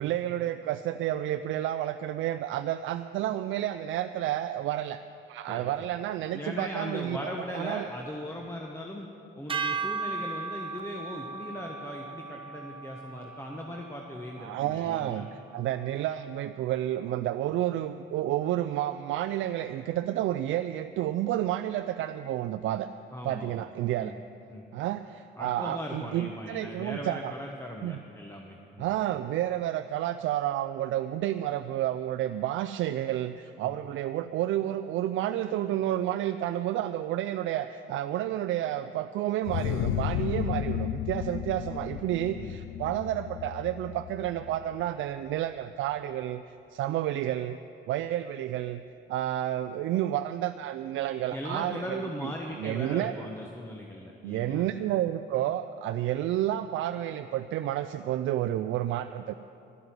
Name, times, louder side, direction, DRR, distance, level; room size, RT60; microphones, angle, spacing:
voice 1, 0.0-5.0 5.3-7.9 14.4-22.9 23.2-24.1 24.7-27.3 27.8-28.0 28.8-47.6 47.9-48.8 49.1-52.3 52.6-53.2 54.2-59.4, right 12 dB, 80° right, 10 dB, 0.4 m, -30 dB
voice 2, 6.3-9.1 9.4-15.3 23.1-23.6 24.0-24.2 24.5-24.6 25.4-28.9 33.6-33.7 42.4-42.6 51.3-54.7, left 1 dB, 15° left, 0 dB, 1.1 m, -39 dB
sound 1, 9.5-15.8, right 4 dB, 25° right, 0.8 m, -37 dB
sound 2, 39.5-45.0, left 11 dB, 90° left, 0.5 m, -33 dB
12.5 x 7.9 x 9.3 m, 2.8 s
cardioid pair, 90°, 20 cm